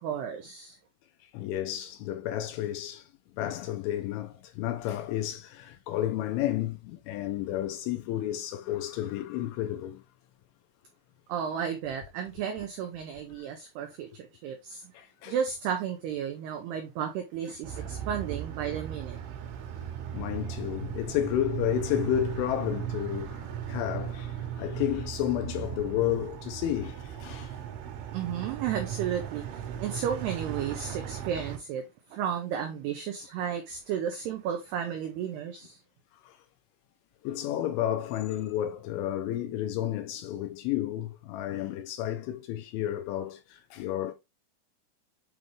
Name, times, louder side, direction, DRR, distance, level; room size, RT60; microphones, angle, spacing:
voice 1, 0.0-0.8 11.3-14.9 15.3-19.2 28.1-35.8, right 8 dB, 85° right, 2.3 m, -33 dB
voice 2, 1.3-10.0 13.4-13.5 14.9-15.4 18.0-18.1 19.8-27.6 36.2-36.4 37.2-44.1, left 12 dB, 80° left, 2.9 m, -32 dB
sound 1, 17.6-31.6, right 10 dB, 70° right, 3.4 m, -37 dB
8.3 x 3.9 x 3.2 m
omnidirectional pair, 6.0 m